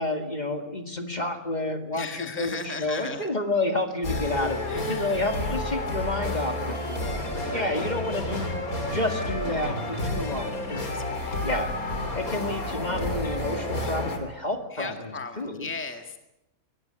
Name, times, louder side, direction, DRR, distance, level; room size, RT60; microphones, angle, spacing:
voice 1, 0.0-8.5 8.9-10.9 11.4-11.7 12.2-15.7, left 2 dB, 30° left, 6 dB, 2.2 m, -30 dB
voice 2, 1.9-3.4 4.1-4.2 4.7-5.3 7.4-7.9 10.8-11.4 13.8-14.0 14.7-16.2, left 4 dB, 10° left, 6 dB, 1.8 m, -37 dB
sound 1, 4.0-14.2, left 1 dB, 70° left, 4.0 m, -30 dB
24.5 x 18.5 x 8.8 m, 0.87 s
omnidirectional pair, 1.5 m